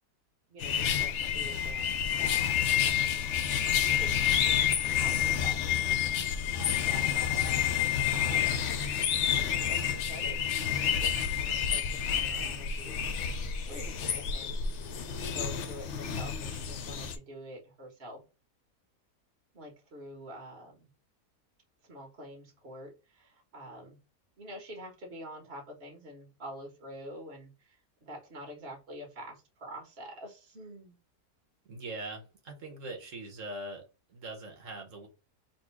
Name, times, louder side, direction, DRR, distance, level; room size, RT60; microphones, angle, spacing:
voice 1, 0.5-1.9 2.2-2.5 3.6-4.2 4.5-5.9 6.8-7.4 7.8-8.5 9.3-13.1 13.3-14.7 15.2-18.2 19.5-20.9 21.8-24.0 24.4-31.0, equal, 40° right, 0 dB, 1.7 m, -47 dB
sound 1, 0.6-17.2, left 9 dB, 65° left, 0.7 m, -29 dB
voice 2, 8.3-8.6 31.7-33.8 34.1-35.1, right 2 dB, 55° right, 2 dB, 1.4 m, -41 dB
4.3 x 2.4 x 4.6 m, 0.29 s
omnidirectional pair, 1.7 m